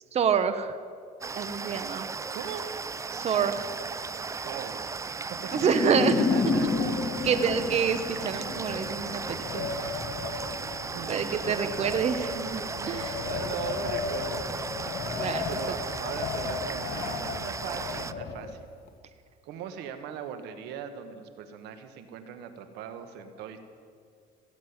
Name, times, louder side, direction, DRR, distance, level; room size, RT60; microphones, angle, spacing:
voice 1, 0.1-0.8 1.4-2.1 3.1-3.7 5.5-6.2 6.5-6.9 7.2-9.7 11.1-13.2 15.1-15.5, right 7 dB, 40° right, 10 dB, 0.9 m, -27 dB
sound 1, 1.2-18.1, right 4 dB, 20° right, 0.4 m, -36 dB
voice 2, 2.3-2.6 4.4-5.0 5.3-5.7 6.0-6.8 9.6-9.8 10.3-11.2 11.8-12.1 12.6-14.6 15.5-18.7 19.4-23.6, right 8 dB, 90° right, 8 dB, 1.4 m, -40 dB
sound 2, 5.5-8.7, left 4 dB, 35° left, 1.1 m, -28 dB
Wind, 6.3-18.9, left 5 dB, 60° left, 1.3 m, -36 dB
16.5 x 7.6 x 9.6 m, 2.1 s
cardioid pair, 115°, 17 cm